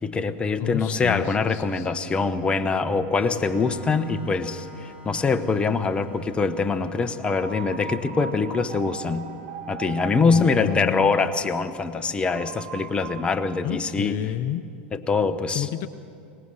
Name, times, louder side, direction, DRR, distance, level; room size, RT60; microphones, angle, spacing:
voice 1, 0.0-9.3 9.7-14.2 14.9-15.7, left 4 dB, 20° left, 9 dB, 1.0 m, -24 dB
voice 2, 0.6-2.1 10.1-11.1 13.6-14.6 15.5-15.9, left 12 dB, 50° left, 10 dB, 0.7 m, -30 dB
Organ, 3.1-10.6, left 2 dB, 30° right, 5.7 m, -47 dB
sound 1, 7.0-13.2, right 6 dB, 60° right, 2.5 m, -39 dB
23.5 x 19.0 x 6.5 m, 2.5 s
hypercardioid pair, 110°, 6 cm